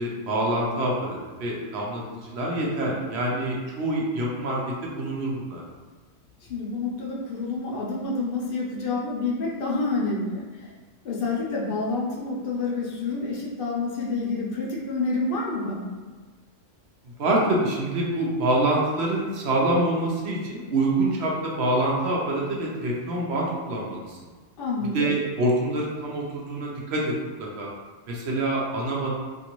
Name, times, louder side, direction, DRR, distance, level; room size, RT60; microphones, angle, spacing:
voice 1, 0.0-5.6 17.0-24.2 24.8-27.7 28.1-29.1, right 1 dB, 65° right, -3 dB, 0.9 m, -26 dB
voice 2, 6.5-10.7 11.0-15.9 24.6-25.1, left 3 dB, 60° left, -3 dB, 0.6 m, -28 dB
2.6 x 2.5 x 2.9 m, 1.4 s
omnidirectional pair, 1.3 m